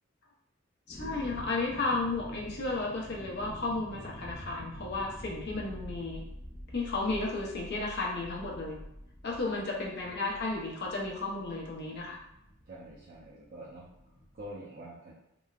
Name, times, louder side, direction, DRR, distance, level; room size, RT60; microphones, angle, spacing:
voice 1, 0.9-6.2 6.7-8.8 9.2-12.2, left 3 dB, 55° left, -2 dB, 0.6 m, -33 dB
sound 1, 0.9-14.5, equal, 10° left, 0.3 m, -47 dB
voice 2, 12.7-15.1, right 1 dB, 45° right, -8 dB, 0.5 m, -47 dB
3.0 x 2.1 x 2.3 m, 0.81 s
head